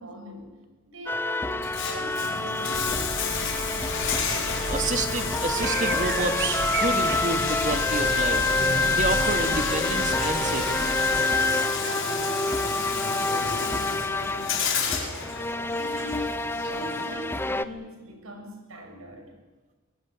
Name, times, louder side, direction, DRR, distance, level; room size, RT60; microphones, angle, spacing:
voice 1, 0.0-3.2 11.8-19.4, equal, 90° right, 4 dB, 6.3 m, -41 dB
Egypt Music, 1.1-17.6, left 2 dB, 10° left, 0.8 m, -28 dB
Bathtub (filling or washing), 1.5-17.5, left 5 dB, 65° left, 5.1 m, -31 dB
sound 1, 2.7-11.2, right 3 dB, 55° right, 1.2 m, -35 dB
voice 2, 4.7-8.6 8.9-10.9, right 2 dB, 40° right, 7 dB, 2.4 m, -29 dB
23.0 x 22.0 x 8.8 m, 1.2 s
head